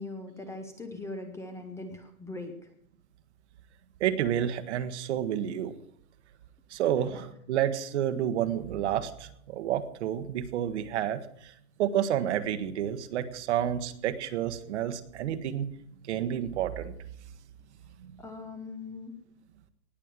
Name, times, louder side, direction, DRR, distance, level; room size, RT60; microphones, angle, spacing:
voice 1, 0.0-2.6 7.1-7.2 18.2-19.1, left 2 dB, 5° left, 6 dB, 0.8 m, -40 dB
voice 2, 4.0-5.8 6.7-11.5 11.8-15.7 16.1-16.9, right 10 dB, 50° right, 11 dB, 1.4 m, -30 dB
19.0 x 7.4 x 7.6 m, 0.69 s
hypercardioid pair, 145°, 45 cm